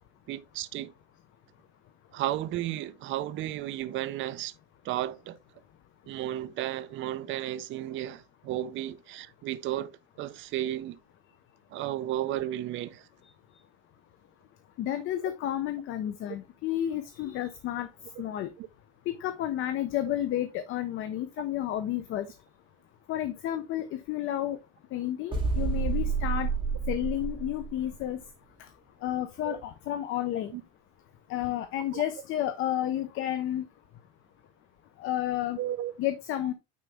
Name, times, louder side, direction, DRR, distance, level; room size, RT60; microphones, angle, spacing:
voice 1, 0.3-0.9 2.1-4.5 4.8-5.4 6.1-9.9 10.2-11.0 11.7-13.1 18.6-18.7 29.4-29.6 30.5-30.6 31.9-32.0 35.6-35.9, right 13 dB, 30° right, 0.5 m, -33 dB
voice 2, 14.8-17.9 18.2-18.5 19.1-22.3 23.1-24.6 24.9-26.5 26.9-28.2 28.6-28.7 29.0-30.5 31.3-33.6 35.0-35.6 36.0-36.5, left 12 dB, 35° left, 0.5 m, -31 dB
sound 1, 25.3-28.0, right 5 dB, 15° right, 1.8 m, -29 dB
9.3 x 4.0 x 3.3 m
cardioid pair, 170°, 38 cm